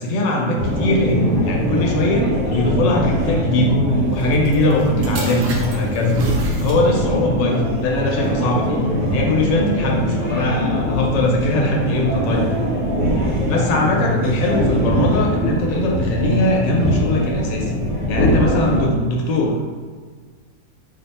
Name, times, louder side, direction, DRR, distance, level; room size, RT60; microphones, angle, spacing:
voice 1, 0.0-3.8 4.1-6.2 6.6-8.8 9.1-12.5 13.5-17.7 18.1-19.6, left 1 dB, 90° left, -1 dB, 1.3 m, -21 dB
sound 1, 0.6-18.8, equal, 30° left, 0.9 m, -21 dB
sound 2, 4.1-7.2 8.0-8.3, right 3 dB, 80° right, 1.2 m, -35 dB
3.3 x 2.1 x 4.0 m, 1.5 s
omnidirectional pair, 1.9 m